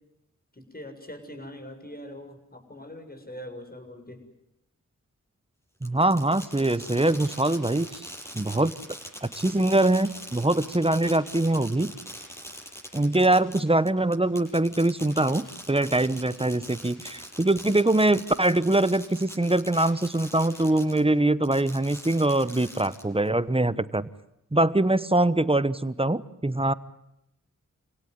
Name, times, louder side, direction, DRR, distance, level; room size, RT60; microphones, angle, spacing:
voice 1, 0.5-4.2, left 1 dB, 30° left, 4 dB, 7.1 m, -42 dB
Fireworks, 5.8-21.0 21.4-23.3, equal, 10° left, 7.7 m, -42 dB
voice 2, 5.8-8.0 8.3-8.7 9.2-11.9 12.9-24.1 24.5-26.7, right 2 dB, 20° right, 15 dB, 1.1 m, -23 dB
28.5 x 17.5 x 9.7 m, 0.85 s
cardioid pair, 50°, 31 cm